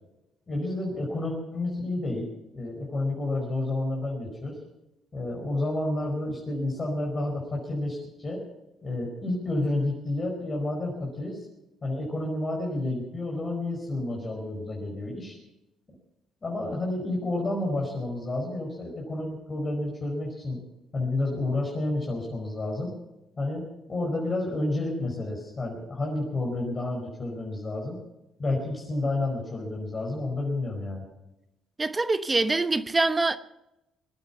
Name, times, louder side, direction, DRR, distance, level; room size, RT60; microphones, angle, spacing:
voice 1, 0.5-2.3 2.5-4.6 5.1-8.4 8.8-11.5 11.8-15.4 16.4-20.6 20.9-22.9 23.4-28.0 28.4-31.0, left 2 dB, 35° left, 5.0 m, -30 dB
voice 2, 31.8-33.4, right 3 dB, 25° right, 0.9 m, -24 dB
21.5 x 9.5 x 5.8 m
supercardioid pair, 65°, 0 cm